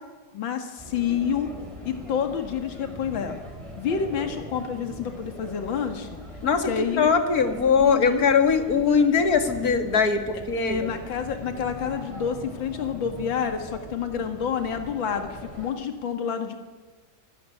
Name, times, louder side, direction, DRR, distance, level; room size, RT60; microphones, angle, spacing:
voice 1, 0.3-1.5 1.9-3.4 3.8-6.1 6.6-7.1 7.8-8.3 10.5-16.6, left 7 dB, 70° left, 6 dB, 2.6 m, -28 dB
sound 1, 0.8-15.7, equal, 15° right, 4.4 m, -41 dB
voice 2, 6.4-10.9, left 5 dB, 50° left, 8 dB, 2.3 m, -21 dB
25.0 x 16.0 x 10.0 m, 1.3 s
omnidirectional pair, 2.2 m